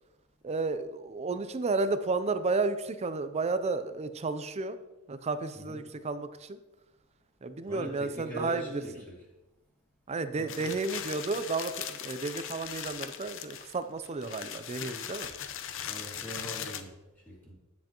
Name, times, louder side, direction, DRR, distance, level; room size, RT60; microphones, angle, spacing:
voice 1, 0.4-4.8 5.1-6.6 7.4-8.8 10.1-15.3, right 3 dB, 30° right, 11 dB, 0.4 m, -32 dB
voice 2, 7.7-9.0 10.4-10.7 15.9-16.9 17.3-17.5, equal, 10° left, -5 dB, 2.3 m, -41 dB
sound 1, 10.5-16.8, left 9 dB, 60° left, 0.6 m, -39 dB
9.3 x 7.5 x 2.9 m, 1.0 s
head